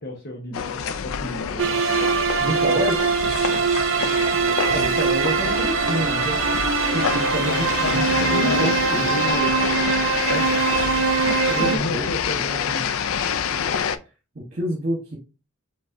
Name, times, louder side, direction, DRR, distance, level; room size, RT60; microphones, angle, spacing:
voice 1, 0.0-1.7 3.4-3.6 8.4-10.3 11.2-12.9, left 1 dB, 50° left, -1 dB, 1.0 m, -33 dB
sound 1, 0.5-14.0, left 7 dB, 75° left, 0.4 m, -27 dB
sound 2, 1.6-11.8, right 5 dB, 65° right, 0.6 m, -22 dB
voice 2, 2.4-3.0 4.7-6.4 6.8-9.0 10.2-10.4 11.5-12.0 14.5-15.2, right 1 dB, 50° right, -1 dB, 1.2 m, -27 dB
5.2 x 3.8 x 2.6 m, 0.30 s
head